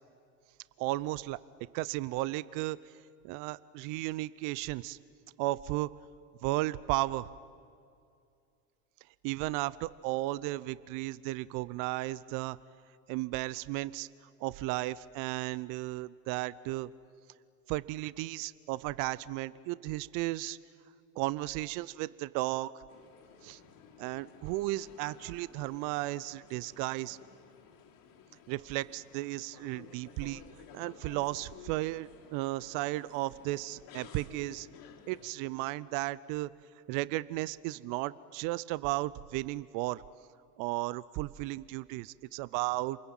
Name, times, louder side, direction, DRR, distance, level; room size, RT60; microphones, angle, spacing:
voice 1, 0.8-1.4 1.7-2.8 3.2-5.0 5.4-5.9 6.4-7.3 9.2-12.6 13.1-14.1 14.4-16.9 17.7-20.6 21.2-22.8 23.4-23.6 24.0-27.2 28.5-30.4 30.7-34.7 35.1-36.5 36.9-40.0 40.6-43.0, right 18 dB, 45° right, 19 dB, 0.7 m, -34 dB
sound 1, 22.9-35.3, left 7 dB, 50° left, 3.4 m, -55 dB
28.0 x 21.0 x 9.1 m, 2.4 s
hypercardioid pair, 80°, 45 cm